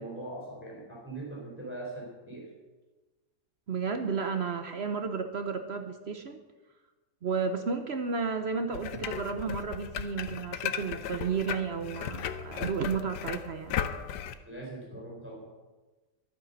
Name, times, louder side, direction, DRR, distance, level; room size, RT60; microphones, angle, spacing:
voice 1, 0.0-2.5 14.5-15.5, right 2 dB, 5° right, -3 dB, 3.7 m, -41 dB
voice 2, 3.7-6.4 7.2-13.7, right 5 dB, 50° right, 7 dB, 0.9 m, -32 dB
sound 1, 8.7-14.3, left 9 dB, 85° left, 1.3 m, -36 dB
12.5 x 9.3 x 6.6 m, 1.2 s
omnidirectional pair, 1.8 m